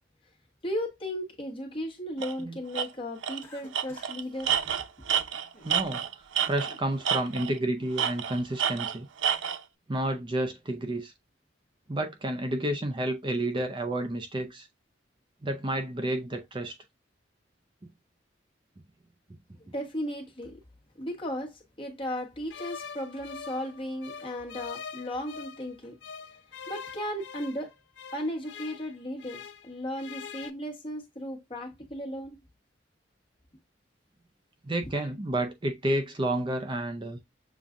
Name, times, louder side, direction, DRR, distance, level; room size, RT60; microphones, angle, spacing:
voice 1, 0.6-4.8 19.7-20.6 21.0-26.0 26.7-27.8 28.1-32.4, equal, 30° left, 1.2 m, -35 dB
Tools, 2.2-2.3 2.7-2.9 3.2-3.4 3.7-6.8 7.1-7.6 8.0-9.6, right 8 dB, 85° right, 0.5 m, -29 dB
Cough, 3.4-4.2 4.5-4.7 5.3-5.7 6.2-6.9, left 1 dB, 10° left, 1.4 m, -53 dB
voice 2, 5.6-6.0 6.5-9.1 9.9-11.1 11.9-14.7 15.4-16.8 34.6-37.2, right 1 dB, 25° right, 0.5 m, -30 dB
sound 1, 22.5-25.7 26.0-29.7 29.9-30.5, left 6 dB, 70° left, 0.6 m, -43 dB
7.0 x 2.3 x 2.5 m
head